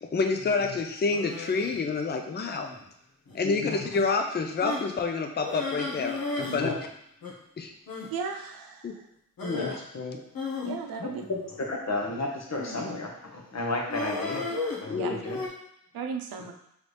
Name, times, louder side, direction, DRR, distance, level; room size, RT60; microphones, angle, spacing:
voice 1, 0.0-2.7 3.3-6.7 7.6-7.7 8.8-9.0 10.6-10.8 14.8-15.2, left 4 dB, 30° left, 5 dB, 0.4 m, -28 dB
sound 1, 1.1-1.8 2.6-2.9 3.3-3.4 3.9-4.1 4.6-4.9 5.4-6.6 6.8-6.9 7.2-7.3 7.9-8.1 9.4-9.8 10.3-11.7 12.5-12.9 13.9-15.5, left 3 dB, 85° left, 1.0 m, -35 dB
voice 2, 3.4-3.7 6.4-6.8 9.4-10.2 11.0-11.4 11.7-14.4 14.8-15.4, left 3 dB, 50° left, -1 dB, 1.0 m, -32 dB
voice 3, 8.1-9.1 10.6-11.2 15.0-15.1 15.9-16.5, right 6 dB, 90° right, 4 dB, 0.6 m, -35 dB
4.0 x 3.2 x 3.3 m, 0.76 s
cardioid pair, 75°, 34 cm